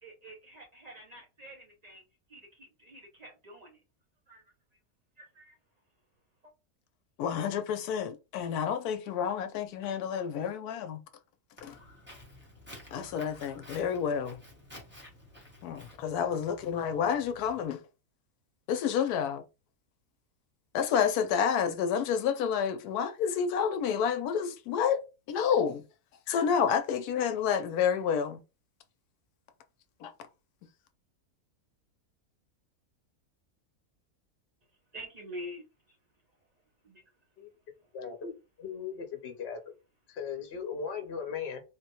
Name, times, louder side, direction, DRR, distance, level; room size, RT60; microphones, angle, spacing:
voice 1, 0.0-2.0 2.3-3.8 4.3-4.4 5.2-5.6 6.4-6.5 34.9-36.0 36.8-37.0, equal, 75° right, 0.3 m, -47 dB
voice 2, 7.2-11.0 11.6-11.8 12.9-14.4 15.6-17.8 18.7-19.4 20.7-25.0 25.3-25.8 26.3-28.4 30.0-30.1, left 7 dB, 80° left, 1.1 m, -29 dB
Walk footsteps, 11.6-17.7, left 1 dB, 10° right, 0.6 m, -52 dB
voice 3, 37.9-38.3 38.6-39.6 40.1-41.6, left 6 dB, 50° left, 0.9 m, -37 dB
3.6 x 2.1 x 2.9 m
omnidirectional pair, 1.6 m